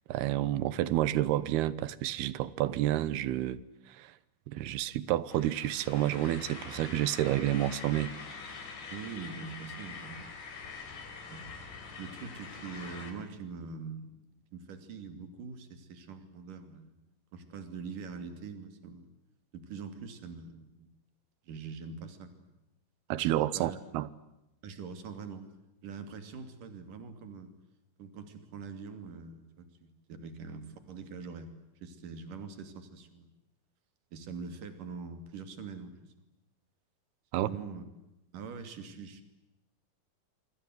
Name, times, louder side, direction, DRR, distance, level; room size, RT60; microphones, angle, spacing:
voice 1, 0.1-3.6 3.9-4.1 4.5-8.2 23.1-24.1 37.3-37.5, right 13 dB, 90° right, 3.1 m, -30 dB
sound 1, 5.3-13.1, left 5 dB, 75° left, 6.5 m, -45 dB
voice 2, 8.9-10.3 11.3-11.6 12.0-14.2 14.5-17.0 17.3-19.1 19.5-20.9 21.4-22.3 23.5-23.8 24.6-25.5 25.8-27.5 28.0-33.3 34.1-36.1 37.3-37.8 38.3-39.2, right 5 dB, 60° right, 4.2 m, -44 dB
26.5 x 25.5 x 7.9 m
omnidirectional pair, 4.4 m